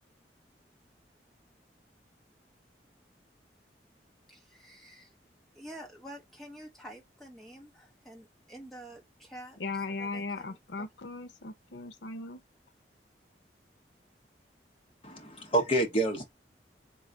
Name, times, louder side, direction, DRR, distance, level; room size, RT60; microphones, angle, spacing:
voice 1, 4.3-5.2 5.5-10.9, right 1 dB, ahead, 0.9 m, -49 dB
voice 2, 9.6-12.4, left 3 dB, 85° left, 0.7 m, -37 dB
voice 3, 15.0-16.2, right 2 dB, 30° left, 1.1 m, -28 dB
3.9 x 2.2 x 3.9 m
head